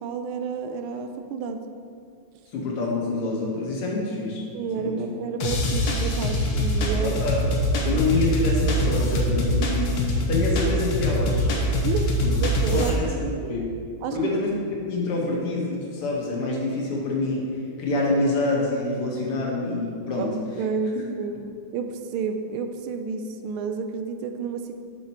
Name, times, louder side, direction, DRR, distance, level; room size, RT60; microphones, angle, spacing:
voice 1, 0.0-1.6 4.5-7.2 11.8-13.4 14.0-14.4 20.2-21.4 21.7-24.7, right 5 dB, 80° right, 7 dB, 1.4 m, -30 dB
voice 2, 2.5-4.4 4.7-5.0 7.0-7.5 7.8-11.5 12.2-12.4 12.7-13.1 13.4-13.6 14.1-14.5 14.8-17.4 17.8-20.3 21.0-21.1, left 2 dB, 80° left, -2 dB, 2.3 m, -26 dB
sound 1, 5.4-12.9, equal, 65° left, 1.6 m, -23 dB
7.4 x 6.9 x 4.4 m, 2.4 s
omnidirectional pair, 2.4 m